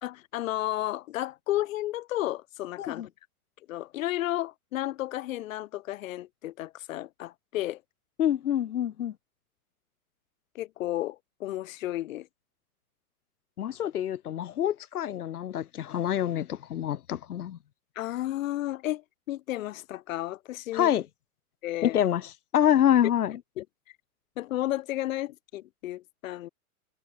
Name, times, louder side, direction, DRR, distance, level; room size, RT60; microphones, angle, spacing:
voice 1, 0.0-3.1 3.7-7.8 10.5-12.3 17.9-19.0 19.3-20.9 21.6-22.0 23.6-24.0 24.4-26.5, left 14 dB, 65° left, 1.5 m, -33 dB
voice 2, 8.2-9.1 13.6-17.6 20.7-21.1 21.8-23.4, left 10 dB, 85° left, 4.3 m, -26 dB
supercardioid pair, 155°, 44 cm